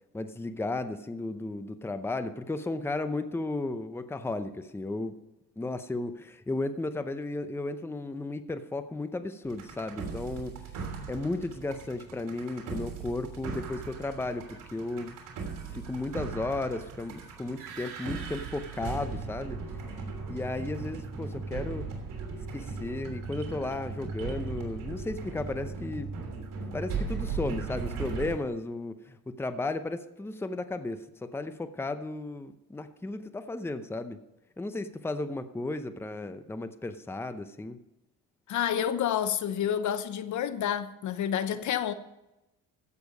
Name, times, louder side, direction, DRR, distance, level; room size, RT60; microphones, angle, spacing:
voice 1, 0.1-5.2 5.6-10.6 11.1-15.1 15.7-19.6 20.3-21.9 22.5-26.1 26.7-34.2 34.6-37.8, left 2 dB, 5° left, 0.7 m, -34 dB
sound 1, 9.5-28.4, right 4 dB, 75° right, 3.2 m, -38 dB
voice 2, 38.5-41.9, left 9 dB, 60° left, 0.9 m, -29 dB
15.0 x 6.9 x 5.3 m
cardioid pair, 120°, 33 cm